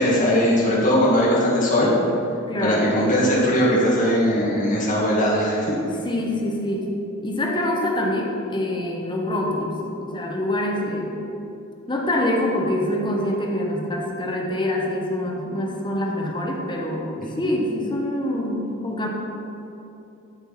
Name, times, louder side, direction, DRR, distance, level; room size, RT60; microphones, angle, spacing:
voice 1, 0.0-1.9 2.6-5.8 17.4-17.5, equal, 40° left, -5 dB, 1.8 m, -19 dB
voice 2, 2.5-3.0 6.0-6.9 7.2-11.2 11.9-19.1, left 1 dB, 20° left, -1 dB, 1.0 m, -25 dB
13.0 x 4.5 x 5.7 m, 2.9 s
head